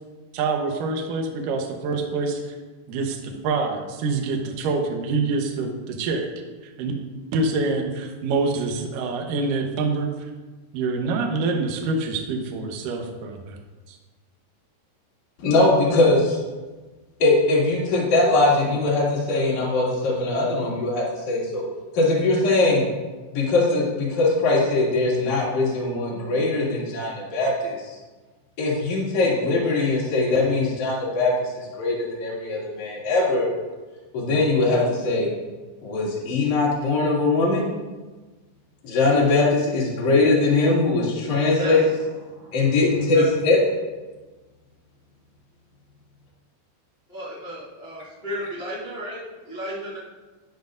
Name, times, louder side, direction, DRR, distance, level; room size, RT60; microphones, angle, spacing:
voice 1, 0.3-2.5 2.9-6.3 6.6-6.9 7.3-10.3 10.7-13.6 13.9-14.0, right 3 dB, 75° right, 2 dB, 2.0 m, -26 dB
voice 2, 15.4-16.4 17.2-21.7 21.9-22.8 23.3-27.8 28.6-31.3 31.8-33.5 34.1-35.3 35.8-37.7 38.8-41.8 42.5-43.6, left 2 dB, 45° left, -6 dB, 3.5 m, -21 dB
voice 3, 41.5-43.3 47.1-50.0, equal, 75° left, -7 dB, 0.5 m, -34 dB
11.5 x 11.0 x 2.6 m, 1.3 s
omnidirectional pair, 5.5 m